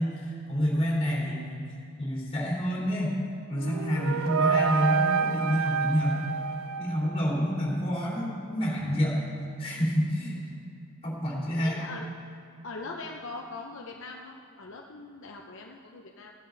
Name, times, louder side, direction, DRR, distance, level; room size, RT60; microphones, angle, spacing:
voice 1, 0.0-1.6 2.0-3.2 3.5-6.3 6.8-9.2 9.6-10.5 11.0-11.8, equal, 30° left, -5 dB, 3.3 m, -28 dB
sound 1, 3.5-7.5, right 6 dB, 70° right, 0.5 m, -28 dB
voice 2, 11.6-12.1 12.6-16.3, left 3 dB, 65° left, 1 dB, 0.8 m, -41 dB
15.5 x 10.5 x 4.0 m, 2.7 s
head